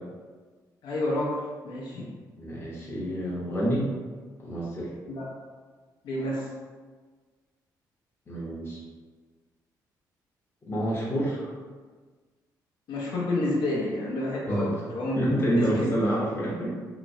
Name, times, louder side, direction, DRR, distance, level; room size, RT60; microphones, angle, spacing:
voice 1, 0.8-2.1 5.1-5.3 6.0-6.5 12.9-15.2 15.6-15.8, left 1 dB, 80° left, -5 dB, 0.6 m, -29 dB
voice 2, 2.4-3.9 4.4-4.9 8.3-8.8 10.6-11.5 14.5-14.7 15.2-16.7, equal, 30° left, -5 dB, 0.7 m, -27 dB
3.0 x 2.9 x 2.6 m, 1.5 s
cardioid pair, 115°, 8 cm